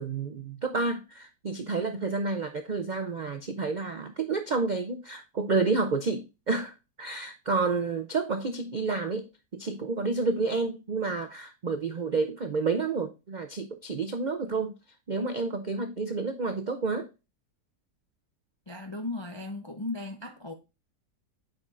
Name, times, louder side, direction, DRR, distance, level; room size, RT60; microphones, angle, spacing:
voice 1, 0.0-9.3 9.5-14.7 15.1-17.1, right 4 dB, 80° right, 0.4 m, -30 dB
voice 2, 18.7-20.5, left 2 dB, 35° left, 0.4 m, -36 dB
8.4 x 5.3 x 2.5 m
omnidirectional pair, 1.7 m